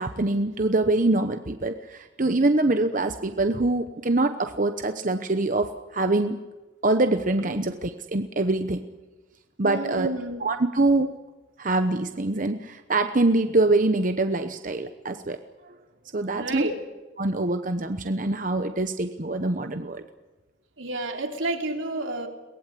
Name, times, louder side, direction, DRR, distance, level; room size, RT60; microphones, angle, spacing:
voice 1, 0.0-6.4 6.8-8.8 9.6-10.1 10.4-11.1 11.6-15.4 15.6-15.8 16.1-16.7 17.2-20.1, right 2 dB, 45° right, 8 dB, 1.0 m, -24 dB
voice 2, 9.6-10.5 16.4-16.7 20.8-22.3, right 2 dB, 85° right, 3 dB, 3.6 m, -30 dB
23.0 x 19.5 x 8.4 m, 1.2 s
head